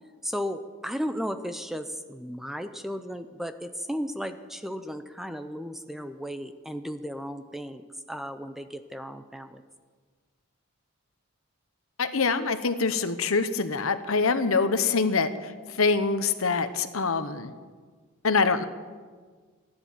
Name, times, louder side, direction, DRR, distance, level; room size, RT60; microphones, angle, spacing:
voice 1, 0.2-9.6, equal, ahead, 9 dB, 0.5 m, -35 dB
voice 2, 12.0-17.5 18.2-18.7, left 4 dB, 70° left, 10 dB, 1.0 m, -25 dB
15.5 x 11.0 x 7.4 m, 1.5 s
head